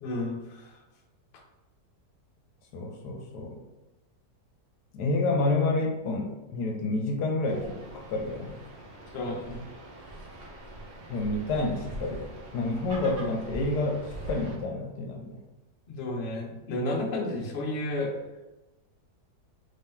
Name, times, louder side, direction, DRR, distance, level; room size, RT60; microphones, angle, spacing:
voice 1, 0.0-0.7 9.1-9.6 15.9-18.1, left 1 dB, 60° left, -1 dB, 0.6 m, -32 dB
voice 2, 2.7-3.6 4.9-8.6 11.1-15.4, left 2 dB, 75° left, 3 dB, 1.1 m, -29 dB
sound 1, 7.5-14.6, right 1 dB, 70° right, 0.5 m, -42 dB
3.3 x 2.8 x 3.6 m, 1.0 s
omnidirectional pair, 1.9 m